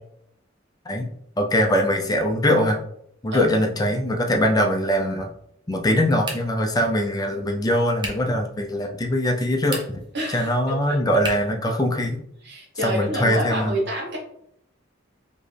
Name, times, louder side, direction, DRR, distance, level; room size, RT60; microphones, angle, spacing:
voice 1, 1.4-2.8 3.2-5.3 5.7-10.0 10.3-12.2 12.8-13.8, equal, 20° left, 3 dB, 0.5 m, -22 dB
sound 1, 6.2-6.7 8.0-8.3 9.6-10.1 11.2-11.6, right 1 dB, 25° right, 0.8 m, -33 dB
voice 2, 10.1-10.5 10.9-11.0 12.4-14.2, left 1 dB, 60° right, -2 dB, 1.2 m, -26 dB
4.4 x 3.0 x 3.3 m, 0.71 s
head